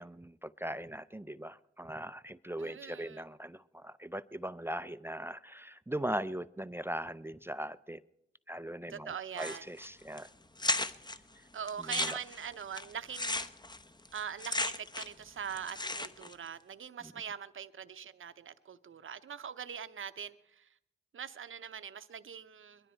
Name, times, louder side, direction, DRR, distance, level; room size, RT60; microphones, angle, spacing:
voice 1, 0.0-8.0 8.5-10.3 11.9-12.2 17.0-17.1, right 1 dB, 10° right, 0.4 m, -40 dB
voice 2, 2.6-3.2 8.9-9.7 11.5-13.5 14.1-20.7 21.1-22.9, right 7 dB, 75° right, 0.7 m, -42 dB
sound 1, 9.4-9.9 10.2-10.3 10.6-11.2 11.7-15.2 15.5-16.3, left 2 dB, 20° left, 0.8 m, -35 dB
22.0 x 12.5 x 4.4 m
cardioid pair, 55°, 21 cm